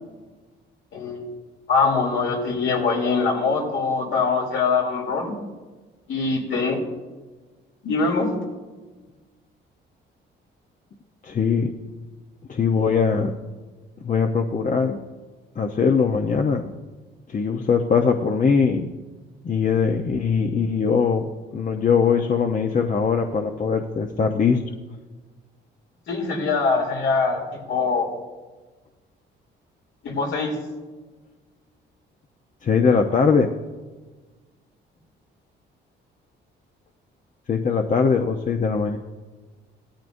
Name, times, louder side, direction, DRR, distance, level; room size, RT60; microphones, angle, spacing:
voice 1, 0.9-1.3 1.7-5.3 6.1-6.8 7.8-8.3 26.1-27.4 27.7-28.1 30.0-30.6, left 4 dB, 70° left, 0 dB, 3.2 m, -23 dB
voice 2, 11.2-11.7 12.5-13.3 14.0-15.0 15.6-16.7 17.3-18.9 19.4-24.6 32.6-33.5 37.5-39.0, left 5 dB, 40° left, 4 dB, 0.9 m, -21 dB
16.5 x 13.0 x 2.7 m, 1.3 s
cardioid pair, 90°, 20 cm